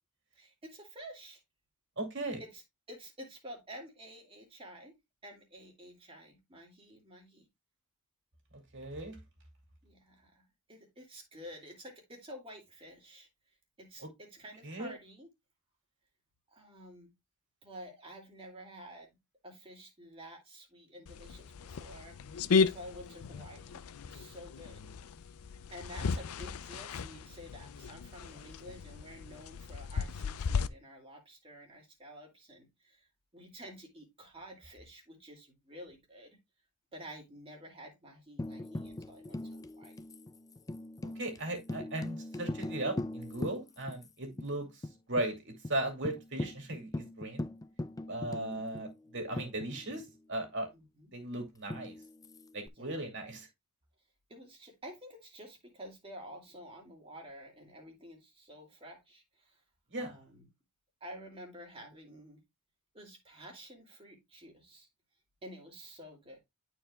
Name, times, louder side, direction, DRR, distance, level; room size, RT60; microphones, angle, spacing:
voice 1, 0.4-1.4 2.4-2.6 2.9-5.0 5.2-7.5 9.8-13.3 13.8-15.3 16.5-17.1 17.6-19.2 19.4-24.9 25.7-33.1 33.3-36.4 36.9-40.0 44.3-44.7 48.5-48.6 50.7-51.1 52.7-53.0 54.3-59.6 59.9-60.5 61.0-62.4 62.9-64.9 65.4-66.4, equal, 25° right, 2.3 m, -50 dB
voice 2, 2.0-2.4 8.7-9.2 14.0-14.1 14.6-14.9 41.2-44.7 45.1-47.5 48.1-50.7 51.1-52.0 52.5-53.5 59.9-60.2, right 1 dB, 55° right, 2.4 m, -37 dB
sound 1, 21.1-30.7, left 5 dB, 75° left, 0.5 m, -35 dB
Tambourine, 38.4-44.1 44.4-44.5 44.8-45.3 45.6-45.7 46.0-50.2 51.7-52.7, left 1 dB, 15° left, 0.3 m, -41 dB
11.5 x 4.5 x 2.3 m
head